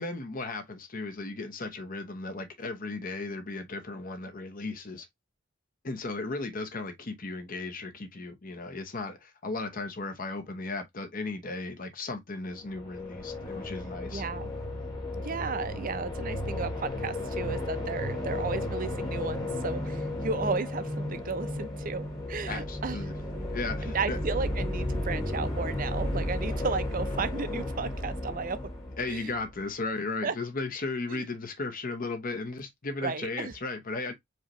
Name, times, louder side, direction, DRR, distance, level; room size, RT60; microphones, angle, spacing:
voice 1, 0.0-5.1 5.8-14.2 22.5-23.2 23.5-24.2 26.5-26.6 27.2-27.3 29.0-34.1, left 3 dB, 45° left, 1.0 m, -36 dB
sound 1, 12.6-29.6, left 1 dB, 20° left, 1.3 m, -34 dB
voice 2, 14.1-14.5 15.2-23.0 23.9-28.6 29.1-29.3 30.2-30.3 31.1-31.2 33.0-33.5, right 4 dB, 45° right, 0.6 m, -34 dB
4.8 x 3.0 x 3.1 m
head